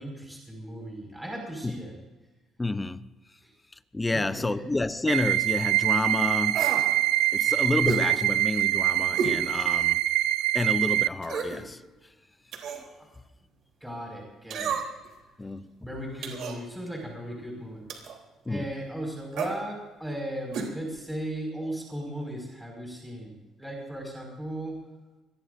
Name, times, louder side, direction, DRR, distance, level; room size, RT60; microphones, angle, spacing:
voice 1, 0.0-1.9 3.4-3.5 4.1-4.6 7.4-7.5 13.8-14.8 15.8-17.8 18.5-24.8, right 1 dB, 5° right, 5.3 m, -37 dB
voice 2, 2.6-3.1 3.9-6.7 7.3-10.0 10.5-11.8 12.8-12.9 15.4-15.8 18.5-18.7, left 2 dB, 15° left, 0.6 m, -29 dB
sound 1, 5.1-11.1, right 15 dB, 85° right, 0.4 m, -24 dB
sound 2, 6.5-6.9 7.9-8.1 9.2-9.4 9.9-10.0 11.2-11.6 12.5-12.9 14.5-15.1 16.2-16.6 17.9-18.2 19.3-19.6 20.5-20.7 21.0-21.1, right 5 dB, 70° right, 3.4 m, -31 dB
25.5 x 21.5 x 2.6 m
cardioid pair, 145°, 0 cm